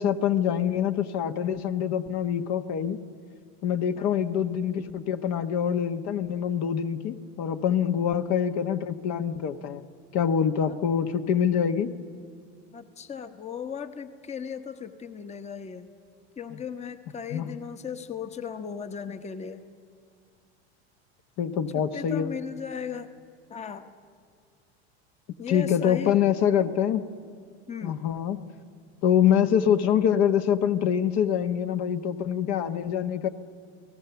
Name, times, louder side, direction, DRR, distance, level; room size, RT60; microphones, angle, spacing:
voice 1, 0.0-3.0 3.6-9.8 10.1-11.9 17.3-17.6 21.4-22.3 25.5-27.0 27.8-28.4 29.0-33.3, left 8 dB, 55° left, 8 dB, 1.2 m, -25 dB
voice 2, 12.7-15.9 16.4-19.6 21.9-23.1 23.5-23.9 25.4-26.2 27.7-28.0, left 7 dB, 20° left, 9 dB, 1.0 m, -37 dB
29.5 x 18.0 x 7.0 m, 2.2 s
supercardioid pair, 100°, 33 cm